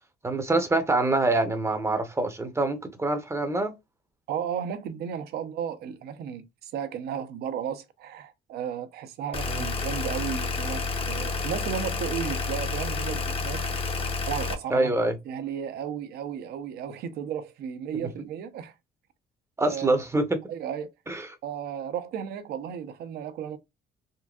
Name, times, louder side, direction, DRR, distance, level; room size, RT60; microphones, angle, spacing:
voice 1, 0.2-3.7 9.5-9.7 14.7-15.2 17.9-18.1 19.6-20.4 21.1-21.3, right 2 dB, 15° right, 0.6 m, -25 dB
voice 2, 4.3-13.6 14.3-14.9 15.3-18.7 19.6-19.9 20.5-20.9 21.4-23.6, right 8 dB, 70° right, 0.6 m, -34 dB
sound 1, 9.3-14.5, left 4 dB, 35° left, 0.6 m, -30 dB
3.8 x 2.6 x 2.3 m
cardioid pair, 110°, 17 cm